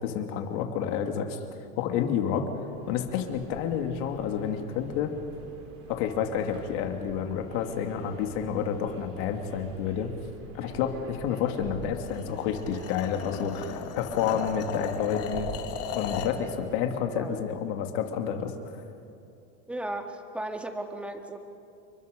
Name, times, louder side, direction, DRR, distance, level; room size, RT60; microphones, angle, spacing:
voice 1, 0.0-1.4 1.8-2.4 2.9-5.1 5.9-10.1 10.5-15.5 15.9-18.5, left 8 dB, 70° left, 5 dB, 2.6 m, -29 dB
Subway metro underground, 2.6-16.9, right 2 dB, 40° right, 4.5 m, -46 dB
sound 1, 12.0-16.4, left 7 dB, 45° left, 2.2 m, -36 dB
voice 2, 19.7-21.4, right 1 dB, 5° right, 5 dB, 1.8 m, -35 dB
29.5 x 23.5 x 5.3 m, 2.7 s
supercardioid pair, 140°, 32 cm